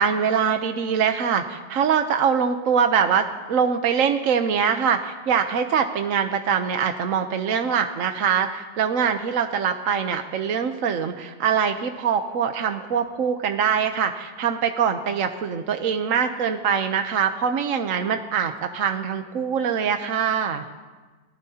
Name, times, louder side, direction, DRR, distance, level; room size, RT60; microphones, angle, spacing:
voice 1, 0.0-20.6, right 7 dB, 55° right, 6 dB, 1.0 m, -23 dB
27.0 x 19.0 x 2.8 m, 1.3 s
omnidirectional pair, 2.0 m